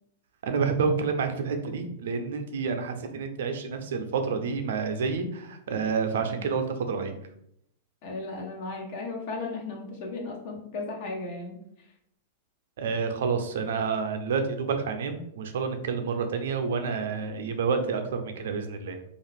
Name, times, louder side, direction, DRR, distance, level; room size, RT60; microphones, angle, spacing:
voice 1, 0.4-7.1 12.8-19.0, right 5 dB, 70° right, 6 dB, 0.5 m, -29 dB
voice 2, 8.0-11.6, left 3 dB, 55° left, 0 dB, 0.9 m, -35 dB
2.4 x 2.4 x 3.3 m, 0.73 s
hypercardioid pair, 115°, 0 cm